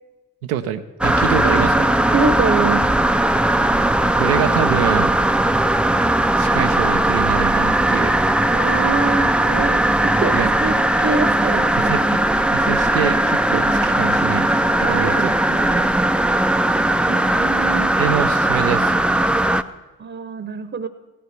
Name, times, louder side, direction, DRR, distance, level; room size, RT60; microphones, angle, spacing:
voice 1, 0.4-2.0 4.2-5.1 6.4-8.1 10.3-10.5 11.8-12.2 12.5-15.3 15.7-15.9 18.0-19.0, right 9 dB, 90° right, 9 dB, 0.7 m, -25 dB
sound 1, 1.0-19.6, right 1 dB, 5° right, 0.4 m, -18 dB
voice 2, 2.1-2.9 8.5-11.9 14.8-15.8 17.1-17.9 20.0-20.9, right 4 dB, 30° right, 12 dB, 0.9 m, -25 dB
16.5 x 8.6 x 5.9 m, 1.1 s
hypercardioid pair, 45°, 41 cm